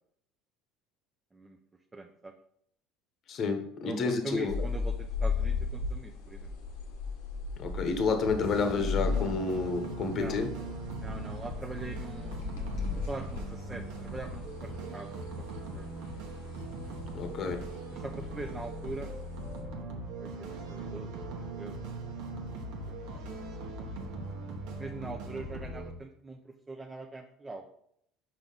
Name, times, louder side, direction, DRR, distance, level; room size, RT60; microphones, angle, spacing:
voice 1, 1.9-2.3 3.8-6.5 10.1-10.4 11.0-12.5 12.9-15.9 17.9-19.1 20.2-21.7 22.1-22.2 22.5-22.6 22.9-23.5 23.8-23.9 24.8-27.6, right 3 dB, 15° right, 3 dB, 0.6 m, -43 dB
voice 2, 3.3-4.5 7.6-10.5 17.1-17.6, left 4 dB, 50° left, 6 dB, 1.0 m, -30 dB
sound 1, 4.5-19.6, left 4 dB, 85° left, 1.2 m, -37 dB
sound 2, 8.2-25.9, right 2 dB, 75° right, 1.2 m, -40 dB
5.6 x 4.8 x 3.9 m, 0.70 s
supercardioid pair, 85°, 0 cm